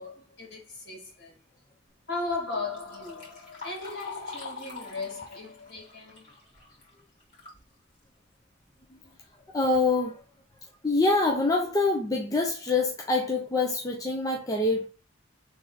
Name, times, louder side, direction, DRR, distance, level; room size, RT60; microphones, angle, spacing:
voice 1, 0.0-1.4 2.1-6.3, left 3 dB, 60° left, 2.2 m, -37 dB
Liquid, 2.5-7.6 8.0-8.1 9.0-9.1 9.5-9.9 10.5-10.6 11.1-11.2 11.6-11.9, left 4 dB, 40° left, 2.5 m, -44 dB
voice 2, 9.5-10.2 10.8-14.9, left 3 dB, 20° left, 0.6 m, -25 dB
4.0 x 3.4 x 3.9 m
head